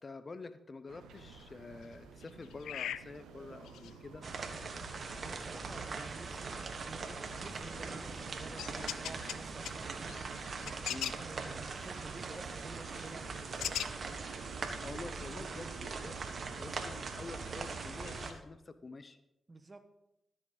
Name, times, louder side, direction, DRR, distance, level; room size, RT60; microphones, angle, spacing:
voice 1, 0.0-4.2 10.9-11.2 14.8-16.2 16.4-19.2, left 3 dB, 45° left, 12 dB, 0.8 m, -48 dB
sound 1, 0.9-18.3, right 7 dB, 85° right, 0.8 m, -52 dB
sound 2, 1.1-18.4, left 11 dB, 80° left, 0.3 m, -47 dB
sound 3, 4.2-18.3, right 4 dB, 55° right, 1.4 m, -41 dB
voice 2, 5.2-10.2 11.1-13.6 19.5-19.9, right 2 dB, 35° right, 10 dB, 1.3 m, -50 dB
13.0 x 7.3 x 5.2 m, 0.90 s
supercardioid pair, 40°, 0 cm